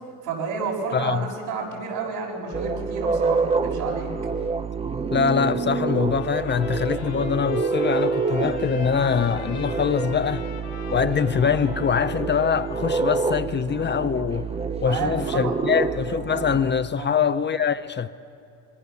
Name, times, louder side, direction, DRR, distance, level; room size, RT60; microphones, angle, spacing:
voice 1, 0.2-4.1 14.8-15.5 17.0-17.1, right 5 dB, 80° right, 7.0 m, -30 dB
voice 2, 0.9-1.3 5.1-10.4 10.9-14.5 14.8-18.1, left 7 dB, 30° left, 0.7 m, -23 dB
sound 1, 2.5-16.7, right 4 dB, 15° right, 0.7 m, -27 dB
Trumpet, 5.9-13.1, left 5 dB, 90° left, 7.2 m, -43 dB
27.0 x 23.0 x 7.0 m
supercardioid pair, 95°, 38 cm